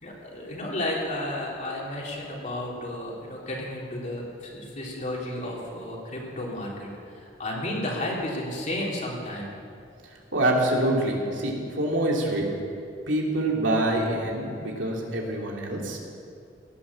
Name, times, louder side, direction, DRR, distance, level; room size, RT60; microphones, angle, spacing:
voice 1, 0.0-9.6, left 1 dB, 40° left, -3 dB, 3.5 m, -32 dB
voice 2, 10.3-12.5 13.1-16.0, right 1 dB, 75° right, -1 dB, 2.9 m, -25 dB
17.5 x 11.5 x 7.1 m, 2.4 s
head